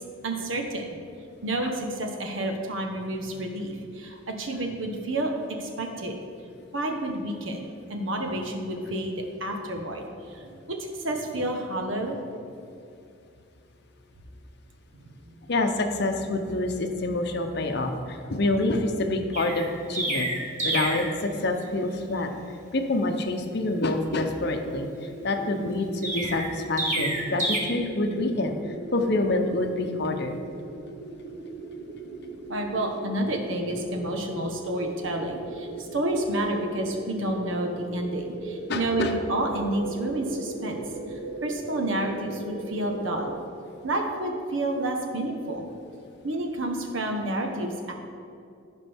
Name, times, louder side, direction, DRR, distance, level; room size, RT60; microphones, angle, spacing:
voice 1, 0.2-1.0 1.4-5.3 5.6-6.1 6.7-12.2 32.5-40.8 41.1-43.3 43.8-45.7 46.2-47.9, right 1 dB, 70° right, 3 dB, 1.1 m, -30 dB
voice 2, 15.5-20.3 20.6-22.3 22.7-24.9 25.2-28.5 28.9-30.4 38.7-39.1, left 2 dB, 50° left, 5 dB, 0.7 m, -27 dB
Chirp tweet, 19.3-21.1 26.0-27.6, right 1 dB, 35° right, 1.4 m, -28 dB
sound 1, 24.6-43.3, right 3 dB, 20° right, 1.4 m, -38 dB
15.0 x 5.3 x 3.5 m, 2.5 s
head